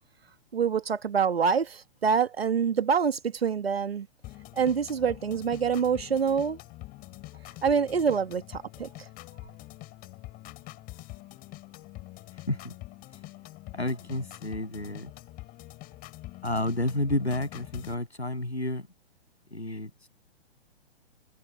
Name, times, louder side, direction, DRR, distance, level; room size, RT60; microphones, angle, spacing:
voice 1, 0.5-4.1 4.5-6.6 7.6-8.9, right 6 dB, 70° right, 1.7 m, -26 dB
sound 1, 4.2-17.9, left 19 dB, 25° left, 7.3 m, -45 dB
voice 2, 13.7-15.1 16.4-18.9 19.5-19.9, left 1 dB, 90° left, 7.9 m, -30 dB
figure-of-eight pair, 115°, 32 cm